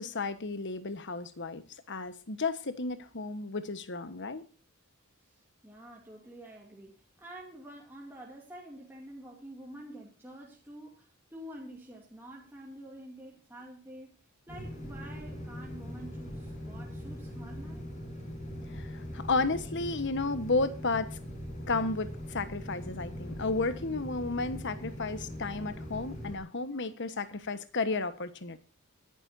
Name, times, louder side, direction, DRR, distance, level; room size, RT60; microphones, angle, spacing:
voice 1, 0.0-4.4 18.7-21.2 21.7-28.6, left 3 dB, 55° left, 1.3 m, -33 dB
voice 2, 5.3-14.1 14.5-17.9, right 1 dB, 10° right, 2.6 m, -48 dB
sound 1, 14.5-26.4, equal, 35° left, 6.5 m, -41 dB
24.0 x 11.5 x 2.7 m
head